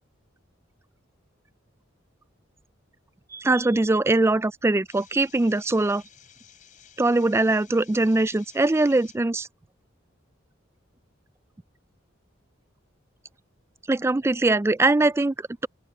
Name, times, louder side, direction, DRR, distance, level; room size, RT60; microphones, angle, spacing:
voice 1, 3.3-6.0 7.0-9.5 13.9-15.7, right 2 dB, 15° right, 0.3 m, -22 dB
sound 1, 4.9-9.2, left 9 dB, 40° left, 4.8 m, -53 dB
open air
head